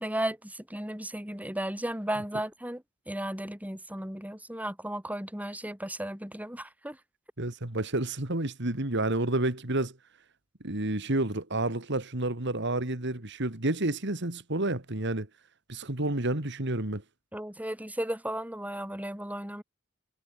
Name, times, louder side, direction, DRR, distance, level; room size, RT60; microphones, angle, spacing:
voice 1, 0.0-7.0 17.3-19.6, right 1 dB, 10° right, 8.0 m, -35 dB
voice 2, 7.4-9.9 10.6-15.3 15.7-17.0, right 2 dB, 60° right, 2.7 m, -30 dB
head